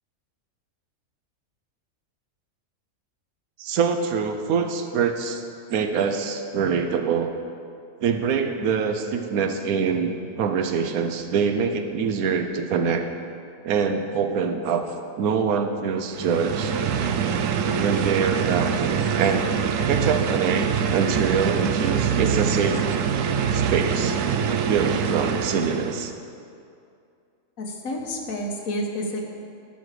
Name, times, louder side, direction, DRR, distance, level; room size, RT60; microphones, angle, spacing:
voice 1, 3.6-5.4 5.7-7.3 8.0-13.0 13.6-14.9 15.2-16.7 17.8-19.5 19.9-22.8 23.5-24.2 24.7-26.1, right 6 dB, 85° right, 6 dB, 1.2 m, -24 dB
sound 1, 16.1-26.1, right 7 dB, 70° right, 0.9 m, -24 dB
voice 2, 27.6-29.2, equal, 75° left, 1 dB, 1.5 m, -29 dB
12.5 x 5.8 x 4.8 m, 2.4 s
omnidirectional pair, 1.5 m